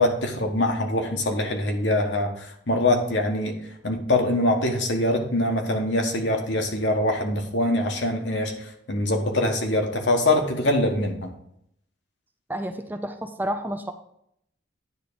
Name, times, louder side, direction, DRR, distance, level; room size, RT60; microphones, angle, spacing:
voice 1, 0.0-3.5 3.8-11.3, left 1 dB, 60° left, 3 dB, 1.4 m, -24 dB
voice 2, 12.5-13.9, right 1 dB, 10° right, 7 dB, 0.5 m, -30 dB
9.6 x 3.7 x 6.9 m, 0.73 s
head